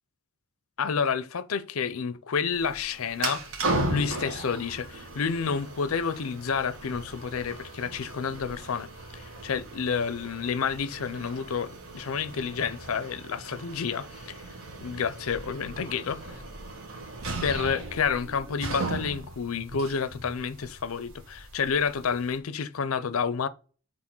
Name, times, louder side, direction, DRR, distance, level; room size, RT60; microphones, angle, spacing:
voice 1, 0.8-3.4 3.9-8.9 9.1-14.4 14.8-16.4 17.4-23.5, left 6 dB, 80° left, 0.5 m, -29 dB
sound 1, 2.5-22.4, right 2 dB, 80° right, 1.7 m, -37 dB
6.1 x 3.9 x 4.4 m
head